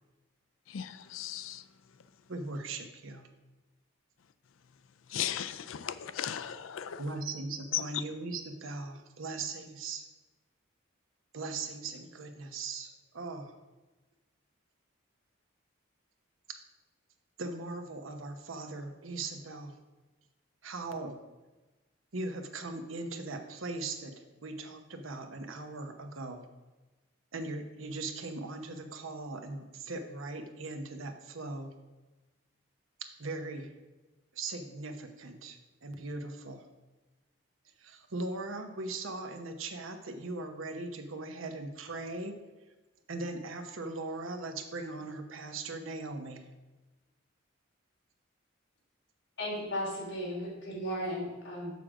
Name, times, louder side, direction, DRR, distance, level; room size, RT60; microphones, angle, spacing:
voice 1, 0.7-1.6 5.1-7.0 7.7-7.8, left 10 dB, 80° left, 0.4 m, -36 dB
voice 2, 2.3-3.3 7.0-10.0 11.3-13.5 16.5-16.6 17.4-19.8 20.6-21.2 22.1-24.1 24.4-26.5 27.3-31.7 33.2-33.7 34.3-36.6 37.8-42.4 43.1-46.4, right 3 dB, 80° right, 0.9 m, -39 dB
voice 3, 49.4-51.7, equal, 60° left, 3.0 m, -35 dB
6.8 x 6.2 x 4.9 m
head